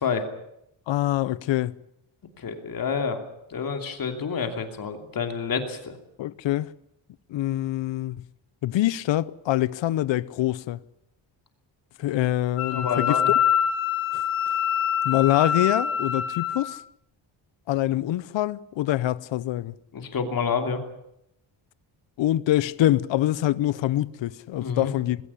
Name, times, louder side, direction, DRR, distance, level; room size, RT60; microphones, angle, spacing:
voice 1, 0.9-1.7 6.2-6.7 7.3-8.2 8.6-10.8 12.0-13.2 15.0-16.8 17.7-19.7 22.2-25.2, left 14 dB, 65° left, 0.7 m, -25 dB
voice 2, 2.4-3.2 3.5-6.0 12.7-13.3 19.9-20.8 24.6-24.9, left 6 dB, 45° left, 2.9 m, -28 dB
Wind instrument woodwind instrument, 12.6-16.6, left 8 dB, 90° left, 2.7 m, -25 dB
20.0 x 17.0 x 9.9 m
wide cardioid pair, 165°, 48 cm